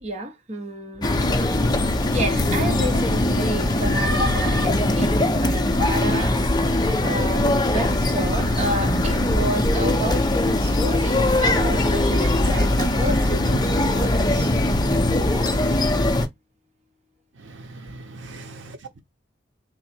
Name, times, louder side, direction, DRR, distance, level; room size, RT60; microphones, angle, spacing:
voice 1, 0.0-1.1 2.1-6.4 7.0-14.5, right 1 dB, 35° right, 0.9 m, -30 dB
sound 1, 1.0-16.3, left 1 dB, 20° left, 0.6 m, -21 dB
voice 2, 17.4-19.0, right 2 dB, 80° right, 0.6 m, -41 dB
3.7 x 2.0 x 4.3 m
head